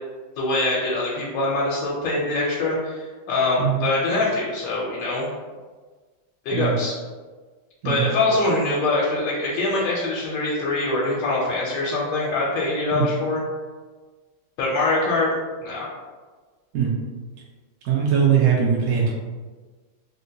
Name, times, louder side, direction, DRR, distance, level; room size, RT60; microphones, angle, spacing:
voice 1, 0.4-5.3 6.4-6.9 7.8-13.4 14.6-15.3 15.6-15.9, left 2 dB, 80° left, -5 dB, 1.4 m, -23 dB
voice 2, 17.8-19.1, right 7 dB, 75° right, -4 dB, 0.8 m, -20 dB
3.8 x 2.1 x 2.7 m, 1.4 s
omnidirectional pair, 2.0 m